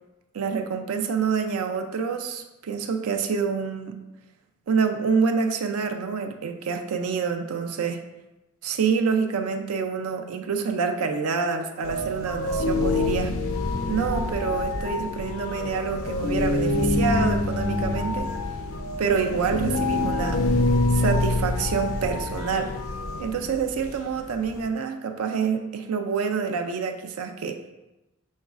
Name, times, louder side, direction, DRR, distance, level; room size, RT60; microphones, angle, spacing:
voice 1, 0.3-4.0 4.7-8.0 8.6-13.3 13.9-18.3 19.0-20.4 20.9-22.7 23.2-27.6, right 5 dB, 90° right, 5 dB, 0.4 m, -27 dB
sound 1, 11.8-24.7, left 2 dB, 80° left, 0.5 m, -26 dB
6.3 x 3.1 x 2.4 m, 1.0 s
head